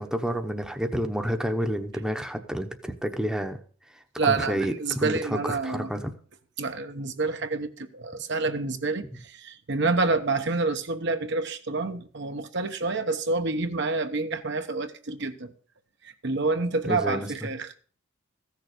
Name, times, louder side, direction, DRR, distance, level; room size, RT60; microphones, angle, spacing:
voice 1, 0.0-3.6 3.9-6.1 16.8-17.5, equal, 5° right, 0.9 m, -30 dB
voice 2, 4.2-5.9 6.6-15.5 16.0-17.7, right 3 dB, 60° right, 1.1 m, -28 dB
15.0 x 6.7 x 6.6 m
head